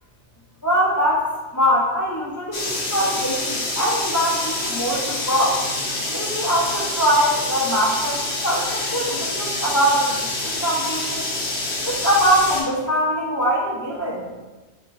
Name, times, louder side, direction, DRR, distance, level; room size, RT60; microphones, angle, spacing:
voice 1, 0.6-2.6 2.9-5.6 6.1-10.2 10.4-11.3 11.8-14.3, equal, 30° left, -6 dB, 0.4 m, -22 dB
sound 1, 2.5-12.6, left 2 dB, 65° left, 1.0 m, -27 dB
3.9 x 3.5 x 2.5 m, 1.2 s
omnidirectional pair, 1.2 m